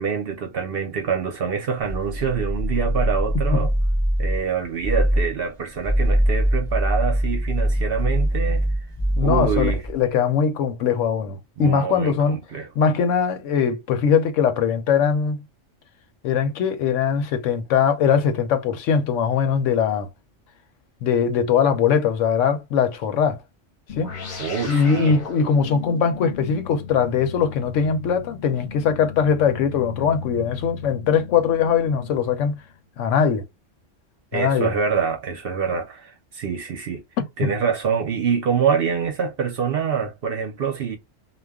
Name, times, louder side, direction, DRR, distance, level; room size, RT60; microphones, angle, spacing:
voice 1, 0.0-3.7 4.2-8.7 9.2-9.8 11.6-12.7 24.4-25.2 34.3-37.0 37.4-41.0, right 6 dB, 60° right, 0.7 m, -25 dB
sound 1, 1.9-4.5 4.8-5.3 5.7-10.0, right 1 dB, 5° left, 0.9 m, -22 dB
voice 2, 9.2-12.4 12.8-15.4 16.2-20.1 21.0-23.4 24.0-24.1 24.7-32.6 33.0-33.4 34.3-34.7 37.2-37.5, left 7 dB, 75° left, 0.9 m, -21 dB
sound 2, 23.9-32.7, left 6 dB, 45° left, 0.8 m, -36 dB
2.3 x 2.1 x 3.4 m
omnidirectional pair, 1.3 m